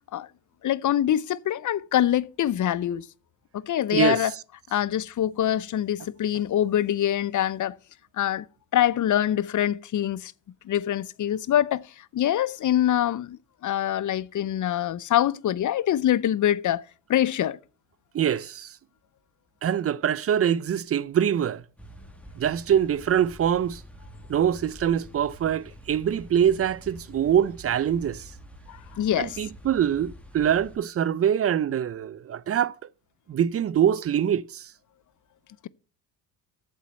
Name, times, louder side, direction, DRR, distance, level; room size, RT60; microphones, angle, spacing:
voice 1, 0.6-3.0 3.5-4.3 4.7-7.8 8.2-8.5 8.7-10.3 10.6-11.8 12.1-16.8 17.1-17.6 28.7-29.4, left 11 dB, 40° left, 0.7 m, -24 dB
voice 2, 3.9-4.2 18.1-18.7 19.6-21.6 22.4-23.8 24.3-28.2 29.2-32.7 33.3-34.7, right 9 dB, 30° right, 0.5 m, -24 dB
sound 1, 21.8-30.8, equal, 5° left, 1.9 m, -47 dB
8.4 x 7.3 x 7.6 m
supercardioid pair, 80°, 48 cm